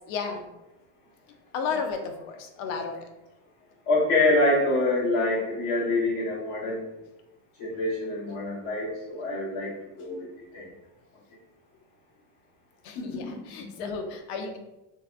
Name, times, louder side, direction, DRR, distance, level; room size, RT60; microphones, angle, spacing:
voice 1, 0.1-0.4 1.5-3.1 12.8-14.6, left 5 dB, 65° left, 5 dB, 0.5 m, -33 dB
voice 2, 3.9-7.0 7.6-9.7 10.0-10.3 10.5-10.7 12.9-13.4, left 2 dB, 45° left, -7 dB, 1.1 m, -26 dB
2.7 x 2.1 x 2.3 m, 0.98 s
cardioid pair, 170°, 43 cm